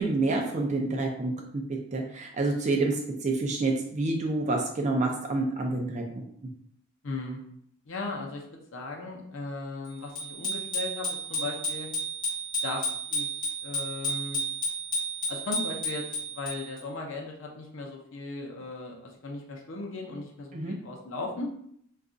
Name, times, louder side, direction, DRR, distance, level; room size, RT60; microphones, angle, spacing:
voice 1, 0.0-1.6 1.9-6.2 20.5-20.8, right 2 dB, 35° right, 1 dB, 0.4 m, -28 dB
voice 2, 7.0-7.4 7.9-8.4 8.7-11.9 12.6-13.3 13.6-14.4 15.3-16.0 16.3-21.5, left 3 dB, 65° left, 0 dB, 0.6 m, -37 dB
Bicycle bell, 10.1-16.8, right 1 dB, 20° left, 1.0 m, -32 dB
2.4 x 2.3 x 3.7 m, 0.67 s
head